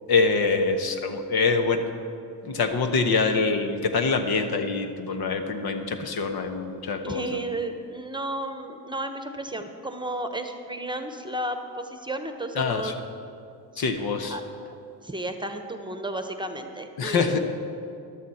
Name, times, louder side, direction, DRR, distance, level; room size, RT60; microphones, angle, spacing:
voice 1, 0.1-1.9 2.4-7.5 12.5-12.9 13.8-14.4 17.0-17.4, left 4 dB, 65° left, 7 dB, 1.2 m, -25 dB
voice 2, 7.0-12.9 13.7-14.4 15.0-17.4, right 1 dB, 10° right, 6 dB, 1.0 m, -33 dB
14.0 x 11.0 x 4.3 m, 2.6 s
supercardioid pair, 70°, 40 cm